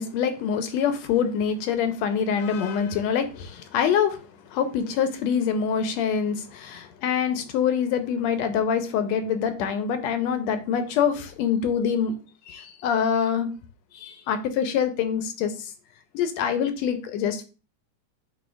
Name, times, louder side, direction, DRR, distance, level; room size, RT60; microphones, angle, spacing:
voice 1, 0.0-12.1 12.5-13.5 13.9-15.7 16.1-17.4, left 7 dB, 80° left, 8 dB, 1.8 m, -25 dB
11.0 x 3.7 x 2.3 m, 0.34 s
omnidirectional pair, 3.3 m